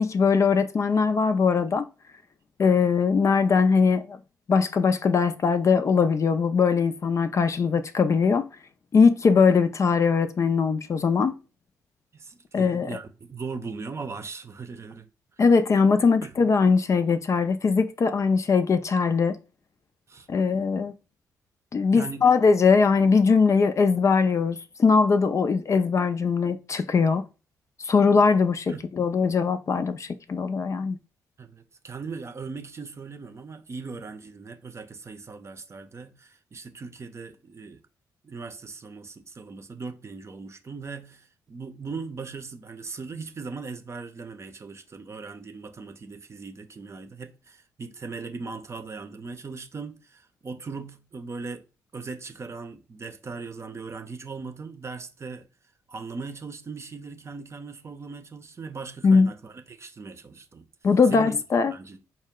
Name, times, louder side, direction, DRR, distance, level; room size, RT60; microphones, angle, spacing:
voice 1, 0.0-1.8 2.6-4.2 4.5-8.5 8.9-11.3 12.5-13.0 15.4-19.4 20.3-20.9 21.7-27.2 27.8-31.0 59.0-59.3 60.8-61.7, left 5 dB, 40° left, 0.4 m, -21 dB
voice 2, 12.1-15.1 16.2-16.4 20.1-20.3 21.9-22.2 28.7-28.9 31.4-37.8 38.2-51.6 51.9-55.5 55.9-60.6 61.1-61.3 61.7-62.0, right 4 dB, 40° right, 0.6 m, -39 dB
4.4 x 2.1 x 3.6 m
supercardioid pair, 55°, 7 cm